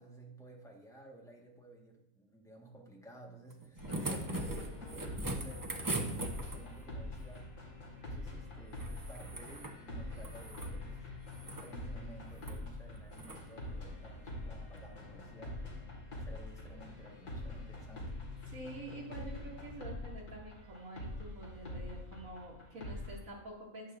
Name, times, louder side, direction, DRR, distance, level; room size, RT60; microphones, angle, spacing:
voice 1, 0.0-7.5 8.0-11.1 11.4-18.2, right 2 dB, ahead, -1 dB, 1.3 m, -54 dB
sound 1, 3.5-6.8 8.7-9.8 10.1-10.7 11.3-11.7 12.4-12.6 13.1-13.4 14.8-14.9, right 2 dB, 25° right, 0.5 m, -40 dB
sound 2, 3.8-23.2, left 1 dB, 65° left, 2.2 m, -45 dB
voice 2, 3.9-4.2 18.5-24.0, right 2 dB, 65° right, -4 dB, 2.6 m, -48 dB
11.0 x 8.1 x 2.5 m, 0.86 s
omnidirectional pair, 1.5 m